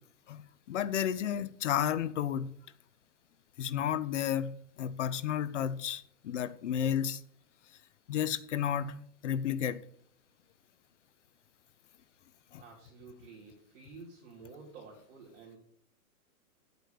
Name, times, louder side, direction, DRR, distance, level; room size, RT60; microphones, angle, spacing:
voice 1, 0.3-2.5 3.6-4.5 4.8-7.2 8.1-9.0 9.2-9.8 12.5-12.6, left 9 dB, 50° left, 0.7 m, -32 dB
voice 2, 12.6-15.6, right 4 dB, 30° right, 3.0 m, -51 dB
8.2 x 8.2 x 6.6 m
hypercardioid pair, 165°, 47 cm